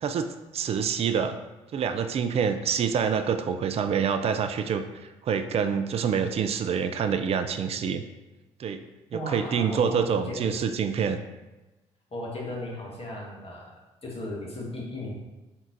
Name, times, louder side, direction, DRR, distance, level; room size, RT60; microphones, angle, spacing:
voice 1, 0.0-1.4 1.7-4.8 5.2-8.0 8.6-8.8 9.1-11.2, right 7 dB, 40° right, 8 dB, 0.4 m, -26 dB
voice 2, 9.1-10.5 12.1-15.1, left 1 dB, 40° left, -3 dB, 1.4 m, -36 dB
4.6 x 3.6 x 2.6 m, 1.1 s
hypercardioid pair, 50°, 15 cm